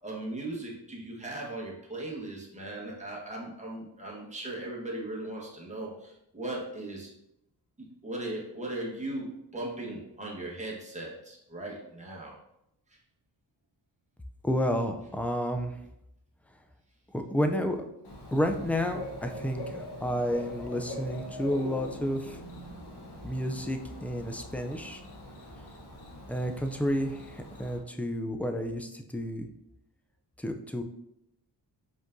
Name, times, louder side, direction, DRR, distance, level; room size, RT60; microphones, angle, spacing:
voice 1, 0.0-7.1 8.0-12.3, right 1 dB, 15° right, -3 dB, 1.3 m, -38 dB
voice 2, 14.4-15.7 17.1-17.8 18.3-22.4 23.2-25.0 26.3-29.5 30.4-30.8, equal, 5° left, 5 dB, 0.3 m, -31 dB
Bird / Cricket, 18.0-27.8, left 1 dB, 65° left, 1.3 m, -43 dB
5.1 x 3.7 x 2.6 m, 0.82 s
wide cardioid pair, 95°, 42 cm